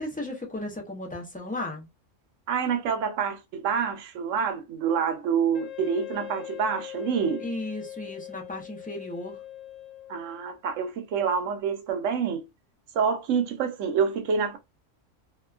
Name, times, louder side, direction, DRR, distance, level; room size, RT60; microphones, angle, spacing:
voice 1, 0.0-1.9 7.4-9.4, left 1 dB, 15° left, 0.3 m, -35 dB
voice 2, 2.5-7.4 10.1-12.4 12.9-14.6, right 6 dB, 90° right, 1.0 m, -27 dB
Wind instrument woodwind instrument, 5.5-10.6, left 12 dB, 80° left, 1.0 m, -41 dB
2.8 x 2.2 x 2.3 m
omnidirectional pair, 1.3 m